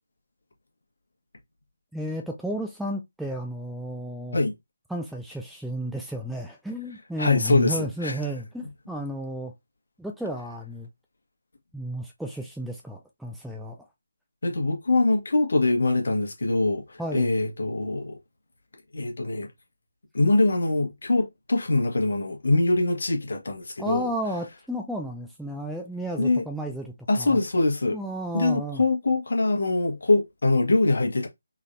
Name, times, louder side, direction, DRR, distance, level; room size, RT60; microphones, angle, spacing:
voice 1, 1.9-4.4 4.9-9.5 10.0-10.9 11.7-13.8 17.0-17.3 23.8-27.4 27.9-28.8, right 1 dB, ahead, 0.4 m, -33 dB
voice 2, 7.2-8.2 14.4-18.2 18.9-19.5 20.1-24.1 26.2-26.4 27.1-28.0 28.3-31.3, left 2 dB, 55° left, 1.4 m, -23 dB
3.9 x 3.2 x 2.6 m
figure-of-eight pair, 155°, 0 cm